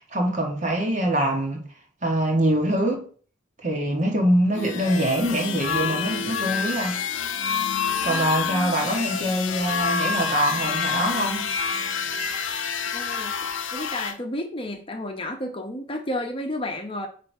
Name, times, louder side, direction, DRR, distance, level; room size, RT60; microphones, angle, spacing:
voice 1, 0.0-1.7 2.0-3.1 3.6-7.1 8.0-11.5, right 1 dB, 40° right, 1.8 m, -24 dB
sound 1, 4.5-14.1, left 6 dB, 85° left, 0.8 m, -27 dB
voice 2, 8.0-8.4 12.9-13.3 13.7-17.1, left 1 dB, 30° left, 1.0 m, -31 dB
9.1 x 3.4 x 4.6 m
head